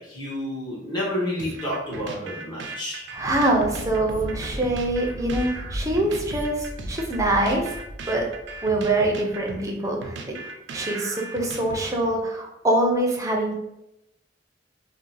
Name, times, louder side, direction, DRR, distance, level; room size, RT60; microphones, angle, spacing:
voice 1, 0.0-3.0, left 1 dB, 25° left, -7 dB, 0.9 m, -30 dB
sound 1, 1.4-12.2, right 3 dB, 70° right, 0.4 m, -38 dB
Thunder, 3.1-9.8, equal, 75° left, 1.1 m, -36 dB
voice 2, 3.1-7.7 8.1-8.3 8.6-10.3 10.7-13.6, right 1 dB, 20° right, 0 dB, 0.5 m, -24 dB
2.7 x 2.0 x 3.9 m, 0.86 s
head